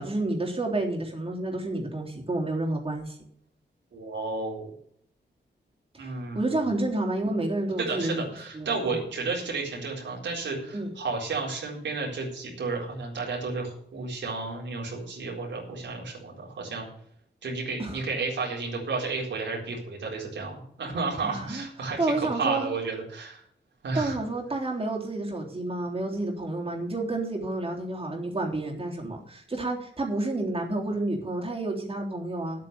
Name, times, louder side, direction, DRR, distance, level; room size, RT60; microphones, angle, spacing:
voice 1, 0.0-3.1 6.0-8.3 8.5-9.0 10.7-10.9 17.8-18.0 21.2-21.6 22.0-22.6 23.9-32.7, right 2 dB, 30° right, 0 dB, 3.5 m, -30 dB
voice 2, 3.9-4.7 6.0-6.6 7.8-16.8 17.4-23.4 23.8-24.2, right 3 dB, 90° right, -2 dB, 4.1 m, -32 dB
9.8 x 8.8 x 6.9 m, 0.67 s
wide cardioid pair, 105°, 18 cm